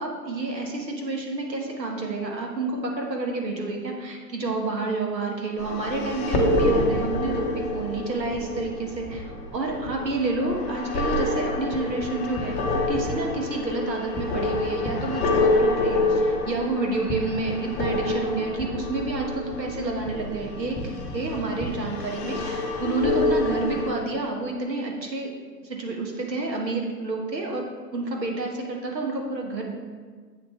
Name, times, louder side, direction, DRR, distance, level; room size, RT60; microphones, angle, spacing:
voice 1, 0.0-25.3 25.6-27.6 27.9-29.7, right 3 dB, 90° right, 1 dB, 1.8 m, -29 dB
sound 1, 5.6-23.9, left 2 dB, 15° left, 0.7 m, -27 dB
7.8 x 6.9 x 3.3 m, 1.5 s
hypercardioid pair, 130°, 49 cm